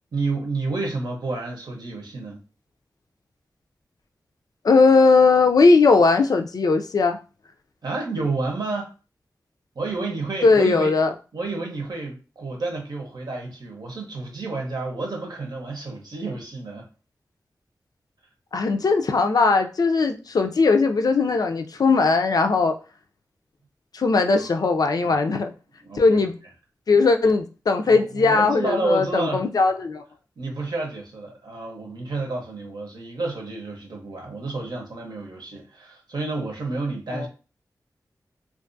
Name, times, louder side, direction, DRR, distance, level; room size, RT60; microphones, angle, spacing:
voice 1, 0.1-2.4 7.8-8.9 9.7-11.0 11.3-16.9 24.2-24.5 25.0-25.5 25.8-26.3 27.9-29.4 30.4-37.3, right 3 dB, 75° right, 0.8 m, -30 dB
voice 2, 4.6-7.2 10.4-11.1 18.5-22.7 23.9-25.5 26.0-26.4 26.9-30.0 37.1-37.3, left 4 dB, 65° left, 0.4 m, -19 dB
2.5 x 2.3 x 2.6 m
cardioid pair, 45°, 7 cm